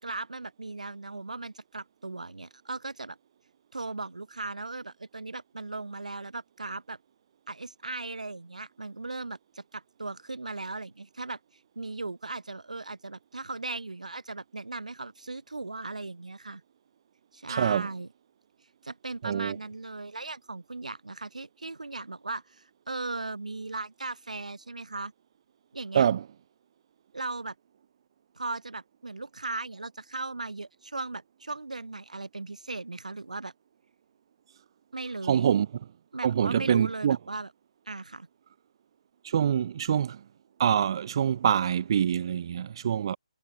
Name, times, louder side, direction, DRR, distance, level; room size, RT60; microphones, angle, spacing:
voice 1, 0.0-3.2 3.7-7.0 7.5-11.4 11.8-16.6 17.3-18.1 18.8-25.1 25.7-26.1 27.1-27.5 28.4-33.5 34.9-35.5 36.1-37.5 37.9-38.3, right 3 dB, 80° right, 2.5 m, -37 dB
voice 2, 17.5-17.9 19.2-19.6 25.9-26.2 35.3-35.7 36.2-37.2 39.2-40.2 40.6-43.2, right 8 dB, 40° right, 1.4 m, -25 dB
figure-of-eight pair, 150°, 4 cm